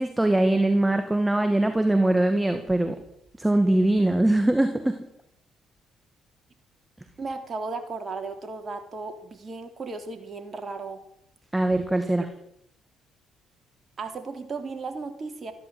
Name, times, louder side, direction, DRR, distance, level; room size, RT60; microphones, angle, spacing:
voice 1, 0.0-3.0 3.4-5.0 11.5-12.3, right 1 dB, 10° right, 7 dB, 2.1 m, -22 dB
voice 2, 7.2-11.0 14.0-15.5, right 3 dB, 40° right, 6 dB, 3.3 m, -35 dB
14.5 x 11.0 x 7.8 m, 0.73 s
hypercardioid pair, 55°, 0 cm